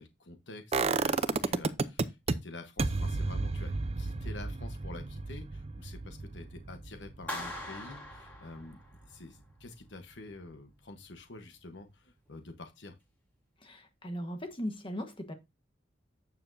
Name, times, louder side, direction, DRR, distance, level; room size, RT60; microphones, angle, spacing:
voice 1, 0.0-13.0, left 2 dB, 80° left, 1.1 m, -48 dB
sound 1, 0.7-2.3 2.8-8.6 8.9-9.0, right 3 dB, 35° right, 0.5 m, -32 dB
Clapping, 7.3-9.2, left 1 dB, 10° left, 4.0 m, -41 dB
voice 2, 13.6-15.3, equal, 30° left, 1.3 m, -38 dB
9.3 x 7.0 x 2.6 m
head